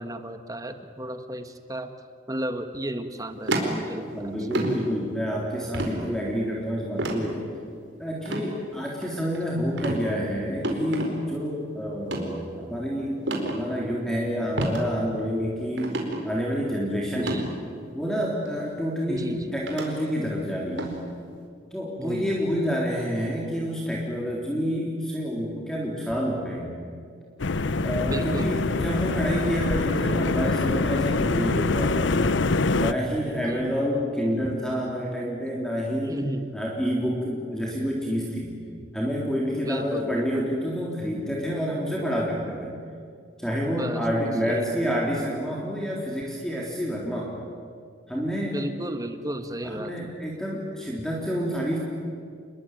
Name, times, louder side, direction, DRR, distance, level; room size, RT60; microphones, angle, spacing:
voice 1, 0.0-1.9 2.3-4.5 17.1-17.7 19.1-19.5 22.0-22.4 28.0-28.9 33.3-33.7 36.1-36.6 39.6-40.4 43.7-44.7 48.5-50.1, right 1 dB, 20° right, 8 dB, 1.6 m, -34 dB
sound 1, 3.5-4.1 4.5-4.8 5.7-6.0 7.0-7.2 8.2-8.4 9.0-9.4 9.8-10.0 10.6-11.1 12.0-12.3 13.3-13.6 14.6-14.8 15.2-15.3 15.8-16.2 17.1-17.4 18.5-18.6 19.7-19.9 20.8-21.0, right 2 dB, 70° right, 4.6 m, -28 dB
voice 2, 4.1-7.5 8.0-17.4 17.9-20.9 21.7-26.7 27.8-32.1 32.7-36.1 36.5-38.5 38.9-42.7 43.4-47.4 48.1-48.6 49.6-51.8, equal, 5° left, -3 dB, 3.7 m, -28 dB
sound 2, 27.4-32.9, left 3 dB, 70° left, 0.8 m, -24 dB
30.0 x 21.5 x 9.2 m, 2.3 s
head